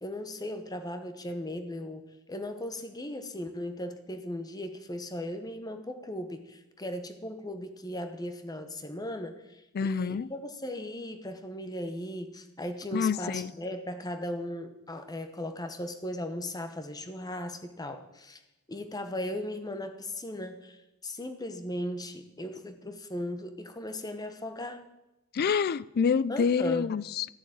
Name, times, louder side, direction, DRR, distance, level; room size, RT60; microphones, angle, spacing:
voice 1, 0.0-18.4 18.7-24.9 26.3-26.9, left 1 dB, 15° left, 1.0 m, -37 dB
voice 2, 9.7-10.3 12.9-13.5 25.3-27.3, left 6 dB, 45° left, 0.3 m, -27 dB
13.0 x 6.9 x 8.8 m
head